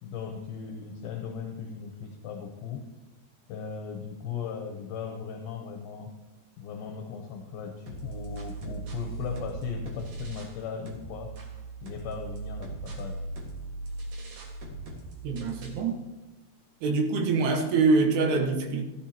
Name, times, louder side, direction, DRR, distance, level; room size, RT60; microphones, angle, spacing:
voice 1, 0.0-2.9 3.5-6.1 6.6-11.3 11.8-13.2, left 6 dB, 75° left, 2 dB, 2.5 m, -37 dB
sound 1, 7.9-10.6 10.9-15.9, right 3 dB, 50° right, 2.0 m, -39 dB
voice 2, 15.2-16.0 16.8-18.8, right 4 dB, 75° right, 4 dB, 3.1 m, -24 dB
15.0 x 11.5 x 2.9 m, 1.1 s
omnidirectional pair, 4.9 m